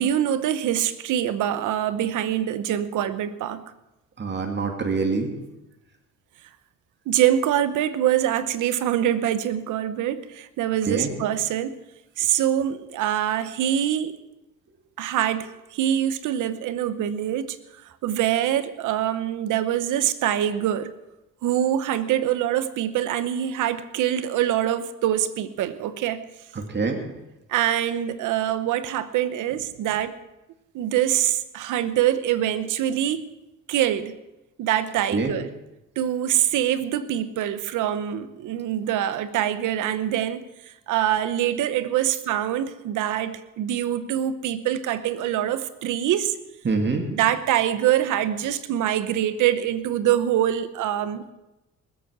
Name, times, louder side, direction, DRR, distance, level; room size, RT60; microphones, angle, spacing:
voice 1, 0.0-3.6 7.1-11.8 12.2-14.1 15.0-17.6 18.0-20.9 21.4-26.2 27.5-30.1 30.7-33.3 33.7-34.1 34.6-35.5 36.0-46.4 47.1-51.3, right 11 dB, 85° right, 13 dB, 1.0 m, -24 dB
voice 2, 4.2-5.3 10.8-11.1 26.5-27.0 35.1-35.3 46.6-47.0, right 4 dB, 35° right, 3 dB, 2.5 m, -25 dB
20.0 x 8.4 x 6.1 m, 0.97 s
cardioid pair, 90°, 30 cm